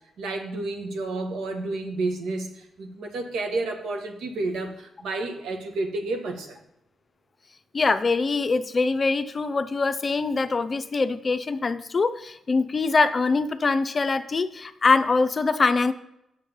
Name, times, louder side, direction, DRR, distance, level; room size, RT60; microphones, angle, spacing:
voice 1, 0.2-6.6, right 2 dB, 90° right, 4 dB, 1.3 m, -30 dB
voice 2, 7.7-15.9, left 4 dB, 40° left, 11 dB, 0.5 m, -23 dB
7.0 x 6.6 x 5.4 m, 0.80 s
cardioid pair, 85°, 0 cm